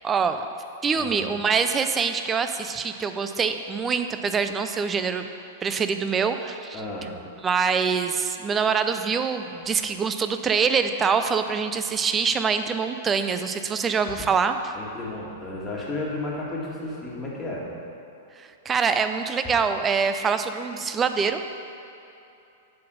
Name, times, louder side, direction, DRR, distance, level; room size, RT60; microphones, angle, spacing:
voice 1, 0.0-0.5 0.8-5.3 5.6-6.8 7.4-14.6 18.4-21.4, right 6 dB, 20° right, 8 dB, 0.4 m, -24 dB
voice 2, 1.0-1.3 6.7-7.2 14.7-17.7, left 2 dB, 15° left, -5 dB, 1.9 m, -33 dB
8.4 x 4.1 x 6.3 m, 2.8 s
figure-of-eight pair, 100°, 0 cm